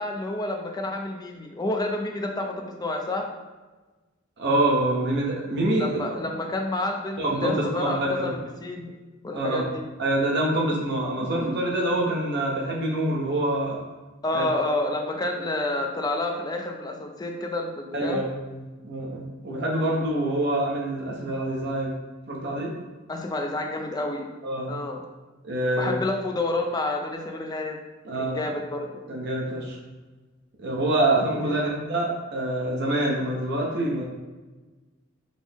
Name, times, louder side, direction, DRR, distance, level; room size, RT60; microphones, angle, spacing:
voice 1, 0.0-3.3 5.8-8.9 9.2-9.8 14.2-18.2 23.1-24.2 24.7-25.0 25.8-27.8 28.2-29.0, left 2 dB, 20° left, 3 dB, 0.4 m, -29 dB
voice 2, 4.4-6.0 7.2-8.3 9.3-9.7 10.0-13.8 14.3-14.5 17.9-21.9 22.3-22.7 24.4-24.8 25.4-25.9 28.0-28.4 29.1-29.8 30.6-34.0, right 1 dB, 55° right, -2 dB, 0.7 m, -26 dB
5.2 x 2.0 x 3.3 m, 1.2 s
head